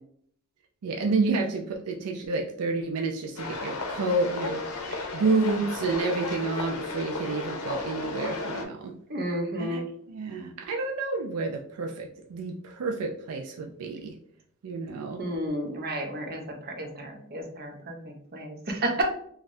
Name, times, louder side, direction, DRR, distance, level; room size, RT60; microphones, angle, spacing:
voice 1, 0.8-4.6 5.1-8.9 9.6-9.8 10.1-14.1 14.6-15.2, right 3 dB, 80° right, 2 dB, 0.4 m, -29 dB
sound 1, 3.4-8.6, left 3 dB, 80° left, 0.6 m, -34 dB
voice 2, 4.9-5.2 9.1-9.8 15.2-19.0, right 1 dB, 45° right, 2 dB, 0.7 m, -32 dB
3.2 x 2.4 x 2.6 m, 0.64 s
head